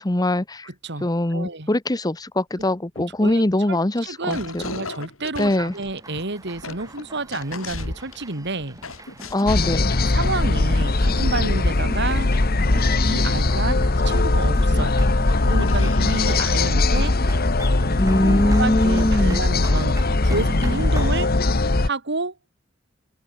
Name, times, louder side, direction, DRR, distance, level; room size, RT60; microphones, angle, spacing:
voice 1, 0.0-0.7 1.0-4.8 5.4-5.7 9.3-9.9 18.0-19.4, left 1 dB, 20° left, 1.0 m, -22 dB
voice 2, 0.6-1.7 3.2-8.8 10.0-12.3 13.0-15.0 15.4-17.1 18.2-21.3 21.8-22.4, right 2 dB, 60° right, 2.9 m, -30 dB
sound 1, 2.6-2.7 3.0-3.7 4.3-8.3 8.8-10.7 11.1-11.3 13.6-13.7 14.1-14.2 14.7-14.8 15.6-17.1, left 3 dB, 85° left, 5.8 m, -37 dB
sound 2, 5.7-21.2, right 1 dB, 15° right, 7.6 m, -40 dB
sound 3, 9.5-21.9, left 2 dB, 50° left, 1.2 m, -20 dB
head